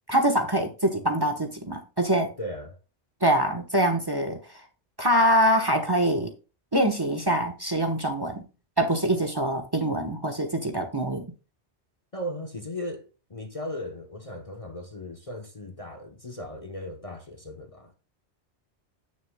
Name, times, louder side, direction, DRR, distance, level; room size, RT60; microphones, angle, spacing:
voice 1, 0.1-2.3 3.2-4.4 5.0-6.3 6.7-8.4 8.8-11.2, right 1 dB, 20° right, 1.1 m, -24 dB
voice 2, 2.4-2.8 12.1-17.9, left 1 dB, 35° left, 0.9 m, -37 dB
16.5 x 6.4 x 2.2 m
omnidirectional pair, 1.2 m